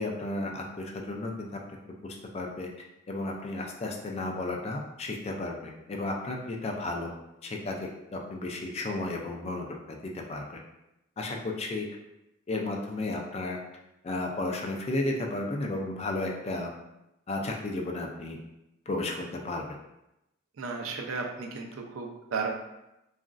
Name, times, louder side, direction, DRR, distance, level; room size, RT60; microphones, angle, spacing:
voice 1, 0.0-1.5 2.0-2.7 3.1-7.1 7.4-10.6 11.2-11.9 12.5-13.6 14.0-16.7 17.3-18.4 18.9-19.6, left 2 dB, 30° left, 1 dB, 0.4 m, -33 dB
voice 2, 20.6-22.5, right 4 dB, 85° right, 2 dB, 0.5 m, -34 dB
2.9 x 2.4 x 2.4 m, 0.89 s
head